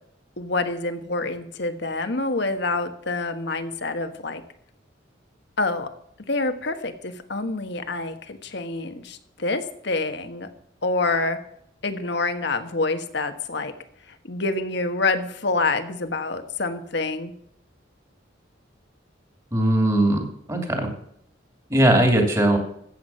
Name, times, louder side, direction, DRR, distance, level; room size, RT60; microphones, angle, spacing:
voice 1, 0.4-4.4 5.6-5.9 6.3-10.5 10.8-11.4 11.8-13.7 14.2-17.3, left 3 dB, 65° left, 8 dB, 1.4 m, -27 dB
voice 2, 19.5-20.9 21.7-22.6, right 1 dB, 20° right, 3 dB, 2.6 m, -19 dB
14.5 x 8.4 x 5.6 m, 0.70 s
head